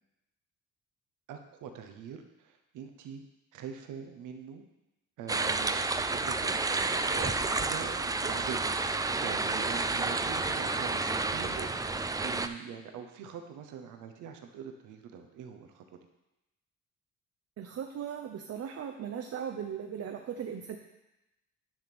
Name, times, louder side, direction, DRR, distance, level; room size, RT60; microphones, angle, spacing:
voice 1, 1.3-3.2 3.5-4.6 5.2-15.8, right 7 dB, 90° right, 5 dB, 0.9 m, -43 dB
sound 1, 5.3-12.5, right 3 dB, 10° right, 0.4 m, -30 dB
voice 2, 17.6-20.8, right 8 dB, 55° right, 4 dB, 0.7 m, -38 dB
10.0 x 3.6 x 6.0 m, 0.95 s
cardioid pair, 90°, 30 cm